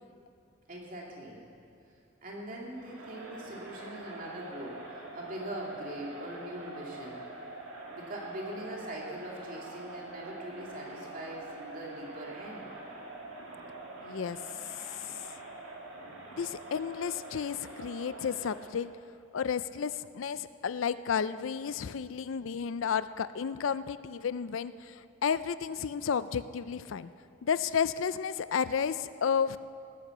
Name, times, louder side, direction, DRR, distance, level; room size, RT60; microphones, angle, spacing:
voice 1, 0.7-1.4 2.2-7.2 7.9-12.7, right 1 dB, 40° right, -2 dB, 2.7 m, -42 dB
Crowd, 2.8-18.9, right 2 dB, 85° right, 2.2 m, -45 dB
voice 2, 14.0-14.4 16.3-18.9 19.3-27.1 27.4-29.6, left 7 dB, 75° left, 15 dB, 0.4 m, -32 dB
18.0 x 9.9 x 6.7 m, 2.5 s
head